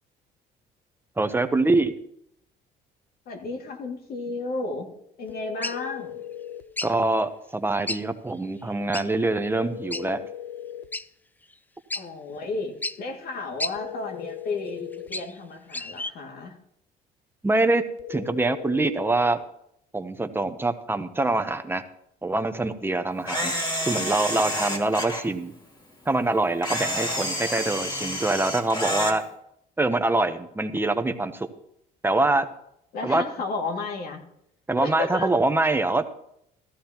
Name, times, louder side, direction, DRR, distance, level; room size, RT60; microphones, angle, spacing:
voice 1, 1.2-1.9 6.8-10.2 17.4-17.8 18.1-19.4 19.9-21.8 22.2-23.5 23.8-25.5 26.1-29.2 29.8-31.5 32.0-32.5 33.0-33.2 34.7-36.1, right 2 dB, 15° right, 9 dB, 0.8 m, -24 dB
voice 2, 3.3-4.9 5.2-6.2 11.9-16.6 32.9-34.2 34.8-35.3, left 3 dB, 65° left, 3 dB, 2.3 m, -32 dB
sound 1, 5.3-6.7 9.5-10.9 13.8-15.2 18.0-19.4, left 10 dB, 85° left, 0.8 m, -38 dB
sound 2, 5.6-5.8 6.8-6.9 7.9-8.0 8.3-8.4 8.9-9.1 9.9-10.0 10.9-11.0 11.5-11.6 11.9-12.0 12.8-13.0 13.6-13.7 14.7-15.4 15.7-16.1, left 2 dB, 10° left, 0.4 m, -31 dB
Camera, 23.3-25.2 26.6-29.2, left 1 dB, 25° left, 2.5 m, -29 dB
14.5 x 14.0 x 3.0 m, 0.74 s
cardioid pair, 110°, 17 cm